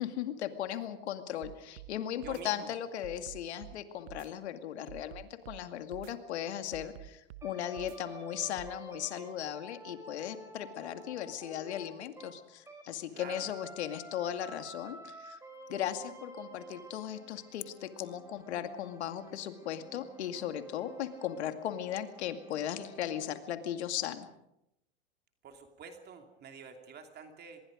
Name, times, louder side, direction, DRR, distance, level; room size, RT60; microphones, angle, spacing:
voice 1, 0.0-15.4 15.7-24.3, left 10 dB, 80° left, 8 dB, 2.3 m, -37 dB
sound 1, 1.4-1.9 2.2-2.4 3.0-3.8 4.1-4.3 4.9-5.6 5.9-6.1 6.7-7.5 7.8-8.0 8.6-8.7, right 14 dB, 70° right, 1.1 m, -48 dB
voice 2, 2.2-2.7 13.1-13.5 25.4-27.6, right 6 dB, 30° right, 5 dB, 2.7 m, -48 dB
sound 2, 7.4-12.9 13.2-23.4, right 2 dB, 10° right, 5.8 m, -51 dB
25.5 x 21.5 x 5.2 m, 0.84 s
hypercardioid pair, 120°, 33 cm